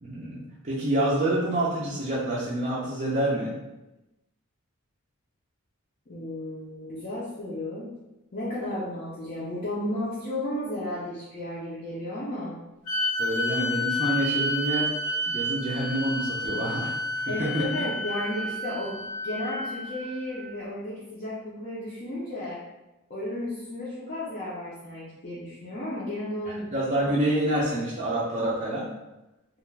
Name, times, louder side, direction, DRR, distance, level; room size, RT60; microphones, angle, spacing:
voice 1, 0.0-3.5 13.2-14.9 15.3-17.8 26.5-28.9, right 1 dB, 30° right, -7 dB, 0.4 m, -27 dB
voice 2, 6.1-7.9 8.3-12.6 17.3-22.6 23.1-26.7, left 1 dB, 40° left, -9 dB, 0.5 m, -33 dB
sound 1, 12.9-20.4, left 1 dB, 80° left, 0.6 m, -30 dB
2.3 x 2.1 x 3.2 m, 0.98 s
head